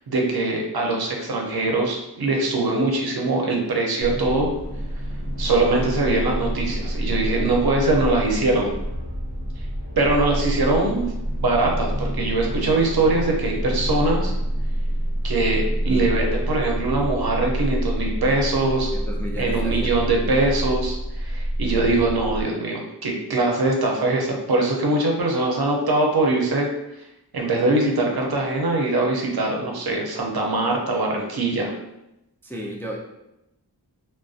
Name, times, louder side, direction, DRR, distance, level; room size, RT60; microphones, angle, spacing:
voice 1, 0.1-4.5 5.4-8.7 10.0-11.1 11.4-14.3 15.2-18.9 19.4-26.7 27.3-31.7, right 2 dB, 65° right, 0 dB, 0.6 m, -22 dB
sound 1, 4.0-22.4, equal, 60° left, 0.7 m, -27 dB
voice 2, 18.9-19.9 32.4-33.0, equal, 5° left, -3 dB, 0.3 m, -33 dB
2.5 x 2.1 x 2.3 m, 0.88 s
wide cardioid pair, 45°, 41 cm